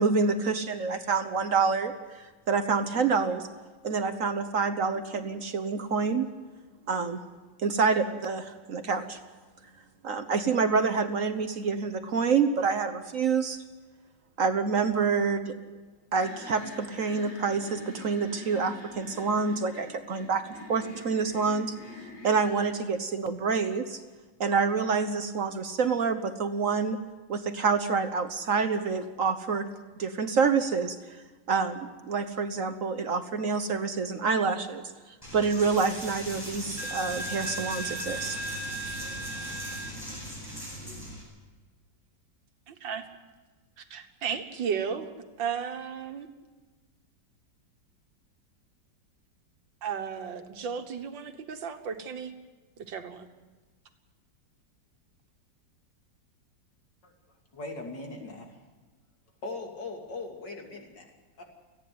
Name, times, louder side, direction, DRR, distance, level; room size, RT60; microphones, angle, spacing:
voice 1, 0.0-3.5 3.8-6.3 6.9-7.2 7.6-9.2 10.0-13.6 14.4-15.5 16.1-20.4 20.7-21.7 22.2-24.0 24.4-27.0 27.3-29.7 30.0-31.2 31.5-38.4, right 5 dB, 50° right, 9 dB, 1.2 m, -27 dB
sound 1, 16.1-22.8, left 2 dB, 85° left, 4.6 m, -45 dB
Coin (dropping), 35.2-41.2, right 1 dB, 10° left, 8.0 m, -36 dB
voice 2, 42.7-43.0 43.8-45.1 45.4-46.3 49.8-52.3 52.9-53.3, right 7 dB, 85° right, 7 dB, 2.1 m, -34 dB
voice 3, 57.5-58.7 59.4-61.4, left 3 dB, 70° left, 2 dB, 3.5 m, -40 dB
29.0 x 10.0 x 9.5 m, 1.3 s
omnidirectional pair, 2.0 m